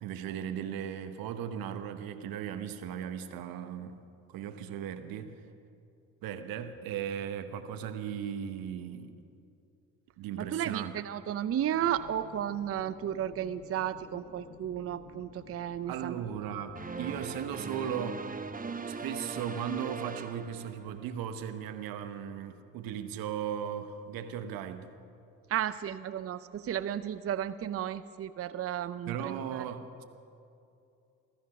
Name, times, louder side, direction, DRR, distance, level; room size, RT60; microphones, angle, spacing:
voice 1, 0.0-4.0 4.3-5.3 6.2-9.1 10.2-10.9 15.9-18.2 18.9-24.9 29.1-30.0, right 9 dB, 85° right, 9 dB, 0.9 m, -37 dB
voice 2, 10.4-16.2 25.5-29.6, right 10 dB, 45° right, 14 dB, 0.5 m, -33 dB
sound 1, 11.7-16.9, left 8 dB, 55° left, 0.9 m, -53 dB
sound 2, 16.7-21.2, right 4 dB, 25° right, 0.9 m, -40 dB
15.0 x 13.5 x 5.8 m, 2.6 s
supercardioid pair, 60°, 34 cm